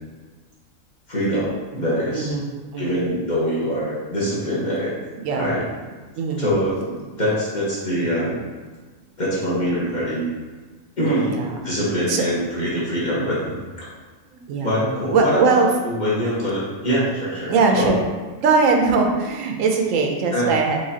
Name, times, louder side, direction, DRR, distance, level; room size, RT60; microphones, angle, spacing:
voice 1, 1.1-2.4 2.8-4.9 5.3-5.6 6.4-8.4 9.2-10.3 11.0-13.8 14.6-15.6 15.8-17.9 20.3-20.5, equal, 35° left, -8 dB, 1.2 m, -24 dB
voice 2, 2.1-3.0 5.2-5.5 6.1-6.5 11.0-11.6 12.1-12.2 14.3-15.7 17.5-18.0 18.4-20.8, right 4 dB, 75° right, 2 dB, 0.9 m, -21 dB
4.7 x 3.3 x 2.8 m, 1.4 s
omnidirectional pair, 1.4 m